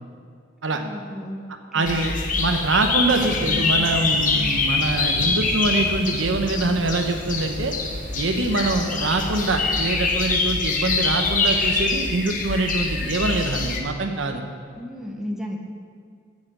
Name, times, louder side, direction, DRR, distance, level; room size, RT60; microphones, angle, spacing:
voice 1, 0.7-1.4 1.7-2.6 14.8-15.6, equal, ahead, -1 dB, 0.9 m, -34 dB
voice 2, 1.7-7.8 8.1-14.4, right 2 dB, 75° right, 5 dB, 0.9 m, -24 dB
sound 1, 1.9-13.8, left 3 dB, 40° left, 0.9 m, -24 dB
sound 2, 3.2-10.1, right 1 dB, 40° right, 0.6 m, -37 dB
7.5 x 7.3 x 7.6 m, 2.2 s
head